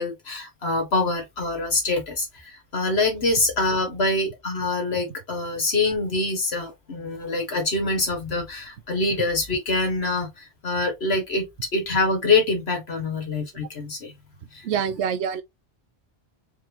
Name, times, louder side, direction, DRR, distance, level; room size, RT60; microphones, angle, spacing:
voice 1, 0.0-11.5 11.7-14.1 14.5-14.6, left 3 dB, 70° left, 2.0 m, -25 dB
voice 2, 14.6-15.4, right 7 dB, 85° right, 1.0 m, -25 dB
4.7 x 3.7 x 3.0 m
omnidirectional pair, 1.1 m